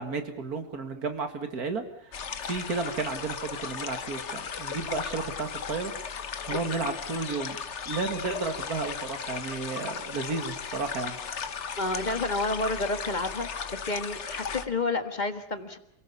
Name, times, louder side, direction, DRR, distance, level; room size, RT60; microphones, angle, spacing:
voice 1, 0.0-1.8 2.4-5.9 6.5-7.6 7.9-11.2, right 4 dB, 55° right, 7 dB, 2.6 m, -32 dB
sound 1, 2.1-14.7, left 6 dB, 45° left, 1.2 m, -36 dB
voice 2, 6.5-6.9 11.8-15.8, left 2 dB, 25° left, 8 dB, 1.6 m, -30 dB
28.0 x 18.0 x 7.1 m, 0.75 s
omnidirectional pair, 1.9 m